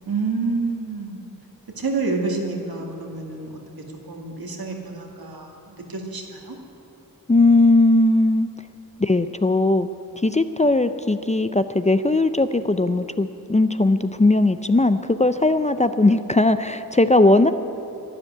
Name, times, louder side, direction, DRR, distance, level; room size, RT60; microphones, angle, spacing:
voice 1, 0.1-1.2 1.8-3.6 4.1-6.6, right 3 dB, 75° right, 1 dB, 2.2 m, -28 dB
voice 2, 7.3-8.5 9.0-9.9 10.2-17.5, left 2 dB, 20° left, 11 dB, 0.5 m, -18 dB
12.0 x 10.5 x 10.0 m, 2.8 s
wide cardioid pair, 70°, 37 cm